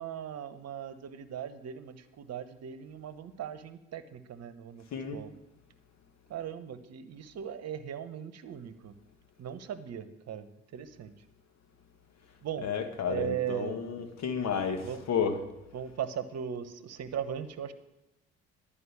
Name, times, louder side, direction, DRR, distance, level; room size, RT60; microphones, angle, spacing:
voice 1, 0.0-4.9 5.1-5.3 6.3-8.9 9.4-11.1 12.4-12.7 13.1-13.8 14.8-15.0 15.7-17.7, right 8 dB, 55° right, 13 dB, 1.0 m, -38 dB
voice 2, 12.6-15.4, left 7 dB, 60° left, 7 dB, 1.7 m, -32 dB
11.5 x 5.5 x 8.3 m, 0.96 s
hypercardioid pair, 55°, 31 cm